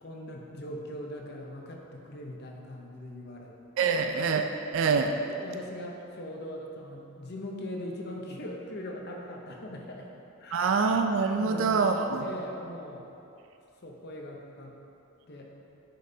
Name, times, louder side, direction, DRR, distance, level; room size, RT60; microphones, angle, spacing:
voice 1, 0.0-4.0 5.3-10.1 10.4-10.7 11.4-13.1 13.8-14.8 15.3-15.5, left 1 dB, 50° left, 0 dB, 0.7 m, -41 dB
voice 2, 3.8-4.4 4.7-5.1 10.5-12.2, right 5 dB, 60° right, 5 dB, 0.3 m, -25 dB
9.8 x 5.4 x 2.7 m, 2.8 s
head